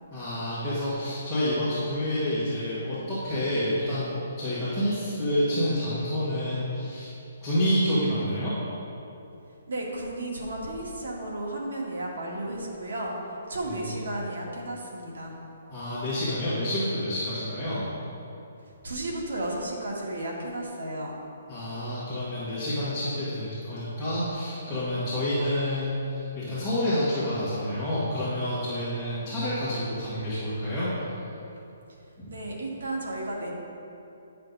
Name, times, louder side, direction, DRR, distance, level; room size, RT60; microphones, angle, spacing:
voice 1, 0.1-7.1 7.4-8.5 13.6-14.0 15.7-17.8 21.5-30.9 32.2-32.3, equal, ahead, -16 dB, 1.7 m, -28 dB
voice 2, 9.7-13.2 13.5-15.3 18.8-21.2 32.3-33.5, right 1 dB, 85° right, -2 dB, 1.9 m, -33 dB
10.5 x 5.8 x 4.0 m, 2.8 s
hypercardioid pair, 170°, 0 cm